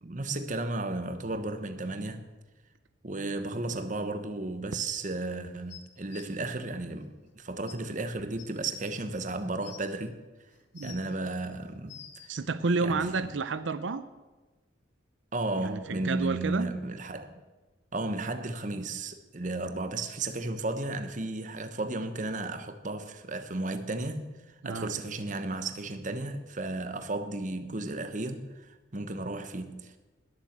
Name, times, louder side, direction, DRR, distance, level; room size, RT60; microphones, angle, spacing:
voice 1, 0.0-2.2 3.0-10.2 10.8-12.3 12.8-13.3 15.3-17.3 17.9-30.0, right 2 dB, 40° right, 1.1 m, -34 dB
sound 1, 5.7-6.2 7.3-7.4 7.7-7.8 8.4-8.5 9.3-9.9 10.5-11.1 11.6-12.3 13.3-13.4, left 9 dB, 75° left, 1.7 m, -48 dB
voice 2, 12.3-14.0 15.6-16.7 24.6-24.9, right 4 dB, 85° right, 0.7 m, -30 dB
20.0 x 7.5 x 7.4 m
head